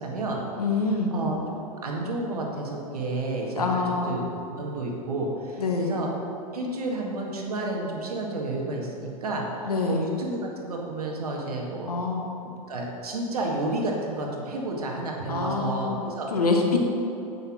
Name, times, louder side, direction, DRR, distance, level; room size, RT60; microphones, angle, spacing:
voice 1, 0.0-0.4 1.1-6.1 6.5-11.9 12.4-16.3, right 2 dB, 85° right, -1 dB, 1.9 m, -31 dB
voice 2, 0.6-1.1 3.6-4.2 5.6-6.0 9.7-10.0 11.9-12.3 15.3-16.0 16.3-16.8, left 4 dB, 90° left, 1 dB, 1.4 m, -25 dB
8.5 x 6.4 x 6.3 m, 2.8 s
hypercardioid pair, 95°, 19 cm